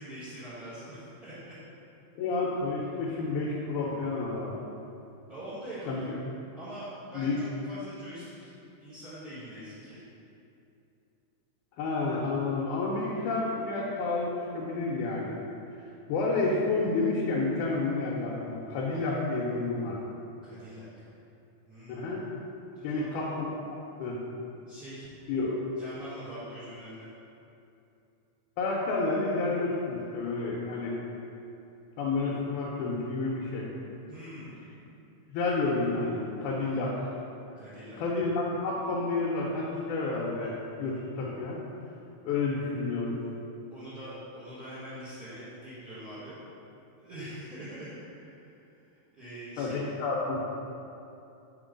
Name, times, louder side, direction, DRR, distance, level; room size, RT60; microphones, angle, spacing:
voice 1, 0.0-1.3 5.3-6.2 6.6-8.5 8.8-10.0 20.4-21.0 21.7-22.1 22.8-23.1 24.7-25.5 25.8-27.1 34.1-34.6 37.6-38.0 43.7-46.4 47.0-48.4 49.2-50.0, equal, 40° right, -14 dB, 1.8 m, -43 dB
voice 2, 2.2-4.6 5.9-6.0 7.1-7.4 11.8-15.3 16.1-20.0 21.9-22.3 22.8-23.5 24.0-24.2 25.3-25.5 28.6-31.0 32.0-33.7 34.7-34.8 35.3-37.1 38.0-41.6 42.3-43.2 49.6-50.5, left 3 dB, 85° left, -5 dB, 2.2 m, -30 dB
4.6 x 4.3 x 5.1 m, 2.7 s
omnidirectional pair, 3.5 m